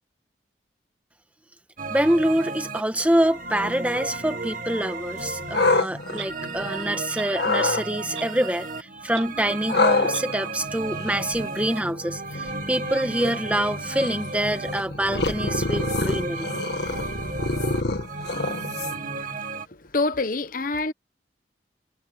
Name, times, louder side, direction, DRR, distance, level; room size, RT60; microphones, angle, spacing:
sound 1, 1.8-19.6, right 3 dB, 50° right, 2.2 m, -34 dB
voice 1, 1.9-16.5, right 1 dB, 10° right, 1.5 m, -26 dB
sound 2, 5.2-6.9 7.3-7.8 9.7-19.2, left 3 dB, 65° left, 2.0 m, -27 dB
Clock, 6.1-6.3 7.1-7.3 8.1-8.4 8.7-8.8 9.1-9.3 10.1-10.3, right 10 dB, 90° right, 2.0 m, -38 dB
voice 2, 19.7-20.9, left 3 dB, 50° left, 1.1 m, -26 dB
head